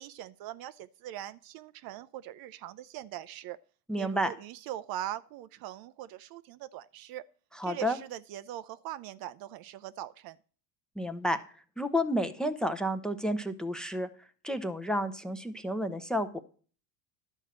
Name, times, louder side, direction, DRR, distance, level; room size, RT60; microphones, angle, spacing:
voice 1, 0.0-3.6 4.0-7.2 7.6-10.4, right 12 dB, 55° right, 0.6 m, -41 dB
voice 2, 3.9-4.3 7.5-8.0 11.0-11.4 11.8-14.1 14.4-16.4, equal, ahead, 0.7 m, -31 dB
11.5 x 4.5 x 7.3 m
supercardioid pair, 110°, 45 cm